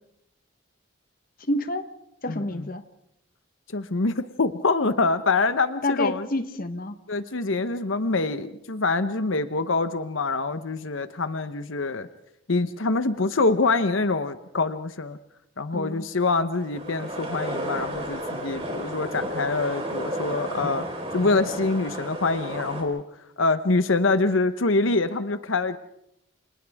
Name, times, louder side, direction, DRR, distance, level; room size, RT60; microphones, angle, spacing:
voice 1, 1.5-1.9 2.2-2.8 5.8-7.0 15.7-16.1, left 2 dB, 45° left, 9 dB, 1.2 m, -28 dB
voice 2, 2.3-2.7 3.7-6.3 7.1-12.1 12.5-15.2 15.6-20.8 21.1-23.0 23.4-25.8, left 3 dB, 80° left, 11 dB, 1.0 m, -25 dB
sound 1, 16.5-22.8, equal, 30° right, 4.5 m, -32 dB
30.0 x 26.5 x 3.6 m, 0.77 s
head